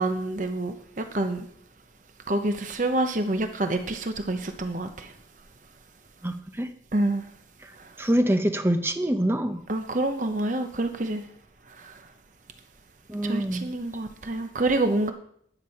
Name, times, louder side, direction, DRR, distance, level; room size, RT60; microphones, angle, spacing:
voice 1, 0.0-1.5 2.3-5.1 6.9-7.2 9.7-11.2 11.8-11.9 13.2-15.1, right 2 dB, 45° right, 0.8 m, -27 dB
voice 2, 6.2-6.7 8.0-9.6 13.1-13.7, right 1 dB, 15° right, 0.7 m, -25 dB
10.5 x 9.0 x 5.7 m
head